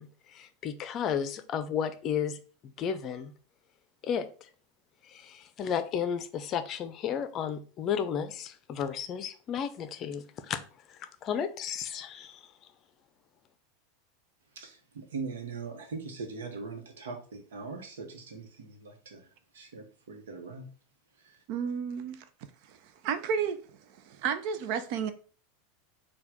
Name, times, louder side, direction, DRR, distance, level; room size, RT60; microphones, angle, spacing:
voice 1, 0.0-3.3 4.0-4.5 5.1-10.6 10.9-12.5, left 8 dB, 40° left, 0.5 m, -33 dB
voice 2, 14.6-19.3 19.5-20.7 21.2-21.4, right 4 dB, 75° right, 0.9 m, -41 dB
voice 3, 21.5-22.2 22.7-22.8 23.0-23.6 24.1-25.1, right 7 dB, 55° right, 0.5 m, -31 dB
4.5 x 2.3 x 3.5 m
hypercardioid pair, 85°, 0 cm